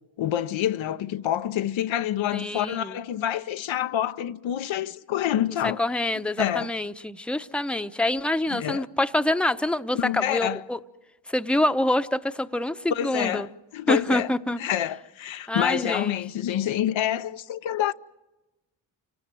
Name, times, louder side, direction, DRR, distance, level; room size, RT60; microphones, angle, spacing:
voice 1, 0.2-5.8 6.4-6.7 8.5-8.9 9.9-10.6 12.9-13.5 13.7-14.3 14.6-17.9, left 11 dB, 70° left, 0.8 m, -27 dB
voice 2, 2.3-3.0 5.6-10.8 11.3-13.5 13.9-14.6 15.5-16.1, left 1 dB, ahead, 0.8 m, -26 dB
28.5 x 19.0 x 7.6 m
supercardioid pair, 50°, 48 cm